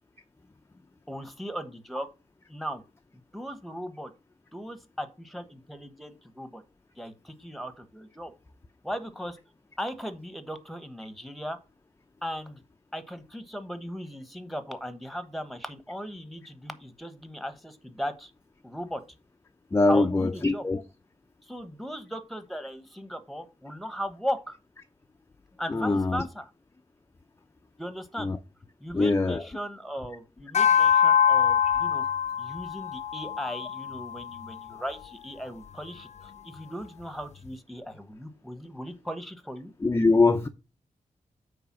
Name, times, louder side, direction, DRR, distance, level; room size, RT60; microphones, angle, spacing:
voice 1, 1.1-2.1 2.5-2.8 3.3-4.1 4.5-6.6 7.0-8.3 8.8-9.4 9.8-11.6 12.2-12.6 12.9-18.3 18.6-19.0 19.9-20.6 21.4-24.6 25.6-26.5 27.8-28.3 28.8-32.0 32.4-39.7, equal, ahead, 1.1 m, -37 dB
voice 2, 19.7-20.8 25.7-26.2 28.2-28.4 28.9-29.5 39.8-40.5, left 3 dB, 20° left, 0.5 m, -23 dB
sound 1, 30.5-35.1, left 8 dB, 60° left, 0.7 m, -24 dB
8.8 x 3.4 x 6.1 m
wide cardioid pair, 85°, 13 cm